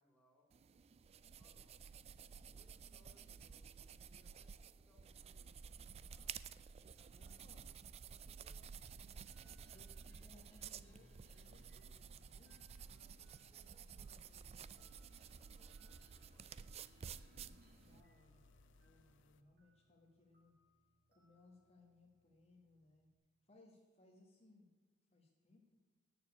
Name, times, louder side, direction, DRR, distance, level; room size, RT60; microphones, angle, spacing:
voice 1, 0.0-1.8 2.3-6.4 6.9-8.7 9.0-9.9 12.8-15.1 15.4-16.6, equal, 5° left, -1 dB, 2.4 m, -74 dB
sound 1, 0.5-18.0, right 7 dB, 30° right, 0.3 m, -53 dB
voice 2, 7.1-7.7 9.7-12.6 17.2-20.5 21.1-23.1 23.4-24.7 25.1-25.6, left 2 dB, 35° left, 0 dB, 1.3 m, -67 dB
sound 2, 8.5-23.2, equal, 50° right, 2.8 m, -73 dB
sound 3, 10.5-19.4, left 4 dB, 65° left, 0.5 m, -71 dB
9.0 x 6.9 x 8.2 m, 1.3 s
head